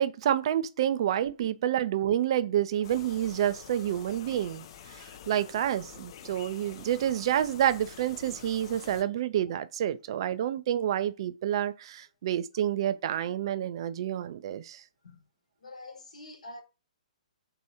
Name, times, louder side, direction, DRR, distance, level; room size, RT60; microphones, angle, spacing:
voice 1, 0.0-14.8, right 11 dB, 40° right, 0.4 m, -29 dB
sound 1, 2.8-9.0, left 9 dB, 40° left, 0.4 m, -48 dB
voice 2, 15.6-16.6, left 2 dB, 65° left, 1.1 m, -45 dB
3.0 x 2.9 x 4.1 m
figure-of-eight pair, 125°, 4 cm